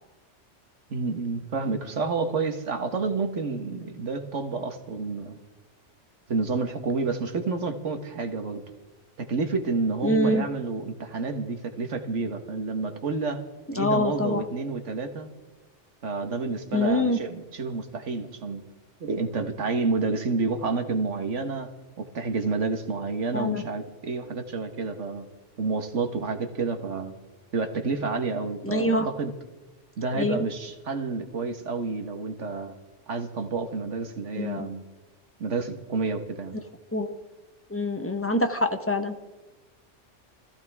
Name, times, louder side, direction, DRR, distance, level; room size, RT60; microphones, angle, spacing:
voice 1, 0.9-5.4 6.3-8.6 9.2-13.4 13.7-15.3 16.0-18.6 19.0-21.7 22.0-25.3 25.6-27.2 27.5-29.3 30.0-32.8 33.1-34.8 35.4-36.6, right 4 dB, 75° right, 6 dB, 1.8 m, -29 dB
voice 2, 10.0-10.5 13.8-14.4 16.7-17.2 23.3-23.6 28.6-29.1 30.2-30.4 34.4-34.7 36.9-37.2 37.7-39.1, left 1 dB, 10° left, 7 dB, 1.0 m, -25 dB
24.5 x 15.0 x 3.6 m, 1.1 s
omnidirectional pair, 1.2 m